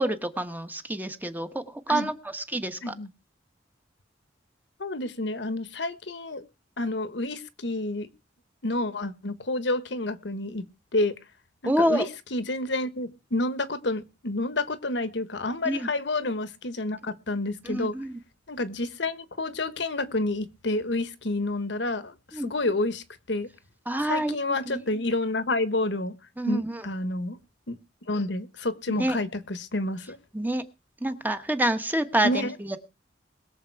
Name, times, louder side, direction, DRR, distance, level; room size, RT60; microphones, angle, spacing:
voice 1, 0.0-2.9 11.6-12.0 15.6-15.9 17.6-18.2 22.3-22.5 23.9-24.4 24.7-24.8 26.4-26.8 28.9-29.2 30.3-30.6 31.0-32.8, right 1 dB, 10° right, 8 dB, 1.2 m, -27 dB
voice 2, 4.8-6.4 6.8-8.1 8.6-10.6 10.9-11.1 11.6-17.9 18.5-23.5 24.0-26.1 26.5-27.4 27.7-27.8 28.1-30.2 32.2-32.5, left 2 dB, 65° left, 12 dB, 1.3 m, -29 dB
21.5 x 7.4 x 4.7 m, 0.30 s
head